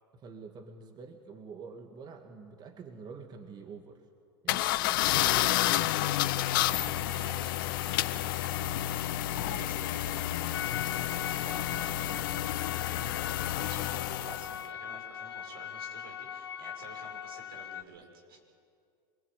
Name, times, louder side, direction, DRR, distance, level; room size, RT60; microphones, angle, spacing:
voice 1, 0.1-4.1 4.4-6.2 6.5-6.7 9.3-9.6 12.9-13.2, right 5 dB, 35° right, 5 dB, 2.2 m, -47 dB
sound 1, 4.5-14.6, left 15 dB, 65° left, 0.9 m, -30 dB
voice 2, 6.4-8.6 9.0-18.4, right 3 dB, 80° right, 2 dB, 6.2 m, -50 dB
sound 2, 10.5-17.8, left 8 dB, 85° left, 1.3 m, -40 dB
26.5 x 21.5 x 9.2 m, 2.3 s
hypercardioid pair, 90°, 12 cm